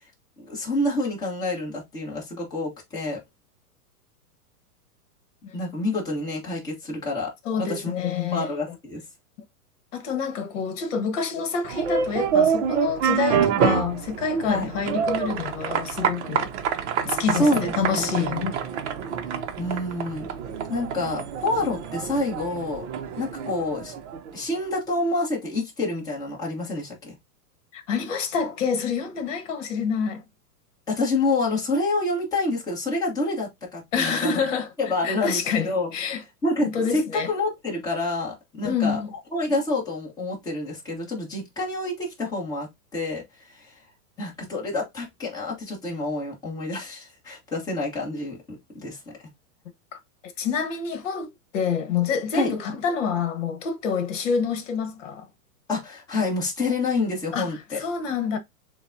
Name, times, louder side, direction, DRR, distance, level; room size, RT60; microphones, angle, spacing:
voice 1, 0.4-3.2 5.5-7.3 7.6-7.9 8.3-9.0 14.5-14.7 17.3-18.3 19.6-20.3 20.7-22.9 23.2-23.9 24.3-27.1 30.9-34.4 34.8-35.9 36.4-39.0 39.3-43.7 44.2-49.0 52.3-52.6 55.7-57.8, left 2 dB, 10° left, 1.1 m, -28 dB
voice 2, 7.4-8.5 9.9-16.5 17.0-18.5 27.7-30.2 33.9-34.7 35.0-36.2 36.6-37.3 38.6-39.1 49.9-50.0 50.4-55.3 57.3-58.4, left 6 dB, 50° left, 1.3 m, -27 dB
sound 1, 11.6-24.4, right 7 dB, 45° right, 0.7 m, -27 dB
6.8 x 2.3 x 2.6 m
supercardioid pair, 170°, 47 cm